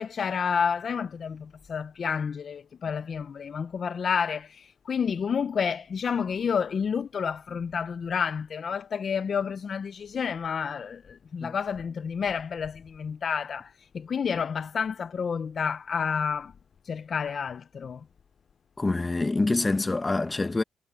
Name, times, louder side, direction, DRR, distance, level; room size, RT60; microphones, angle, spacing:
voice 1, 0.0-16.5 16.9-18.0, left 6 dB, 55° left, 0.8 m, -30 dB
voice 2, 18.8-20.6, left 3 dB, 25° left, 1.3 m, -26 dB
supercardioid pair, 65°, 0 cm